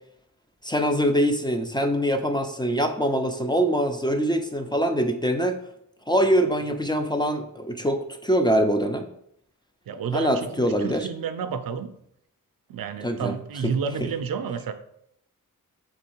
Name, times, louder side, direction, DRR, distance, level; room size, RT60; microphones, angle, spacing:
voice 1, 0.6-5.6 6.1-9.1 10.1-11.1 13.0-13.4 13.6-13.7 14.0-14.1, equal, 15° left, 6 dB, 0.4 m, -24 dB
voice 2, 9.9-11.9 12.7-14.7, right 6 dB, 80° right, 9 dB, 0.5 m, -30 dB
3.6 x 3.1 x 4.4 m, 0.72 s
wide cardioid pair, 90°, 35 cm